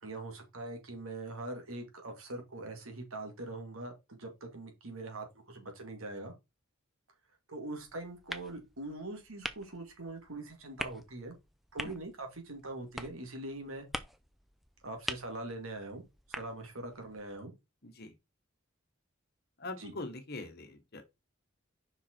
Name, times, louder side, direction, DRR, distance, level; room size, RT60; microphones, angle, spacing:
voice 1, 0.0-6.3 7.5-11.3 11.7-13.9 14.8-16.0 16.3-17.5 19.8-19.9, right 2 dB, 75° right, 2.2 m, -42 dB
sound 1, 7.8-17.4, equal, ahead, 0.5 m, -45 dB
voice 2, 17.8-18.1 19.6-21.0, left 2 dB, 50° left, 1.3 m, -43 dB
5.6 x 4.7 x 4.4 m
head